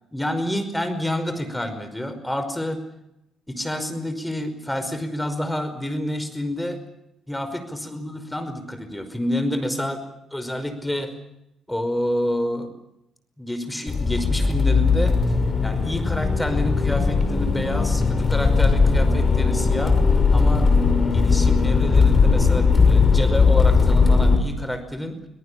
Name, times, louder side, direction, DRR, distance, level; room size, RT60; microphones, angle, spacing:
voice 1, 0.1-2.8 3.5-6.8 7.3-10.0 10.3-11.1 11.7-12.7 13.4-15.1 15.6-20.0 20.3-20.7 21.1-25.2, left 1 dB, 10° left, 9 dB, 5.3 m, -28 dB
Accelerating revving vroom, 13.9-24.4, left 4 dB, 35° left, 5.7 m, -18 dB
24.5 x 18.5 x 8.7 m, 0.84 s
hypercardioid pair, 50°, 0 cm